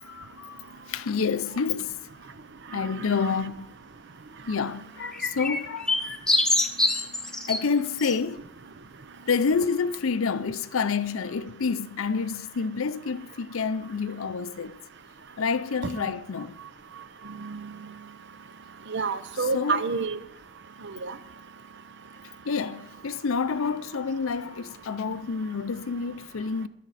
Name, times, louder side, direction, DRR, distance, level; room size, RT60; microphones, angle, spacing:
voice 1, 0.0-2.0 2.7-3.7 4.5-6.1 7.5-8.4 9.3-14.8 15.4-16.5 19.3-20.0 22.4-26.7, left 5 dB, 70° left, 0.5 m, -28 dB
voice 2, 2.7-3.4 17.2-17.7 18.9-20.2 20.8-21.1, right 4 dB, 55° right, 0.7 m, -30 dB
sound 1, 5.0-7.6 8.0-8.1, left 2 dB, 5° left, 1.0 m, -25 dB
21.5 x 7.5 x 4.1 m
head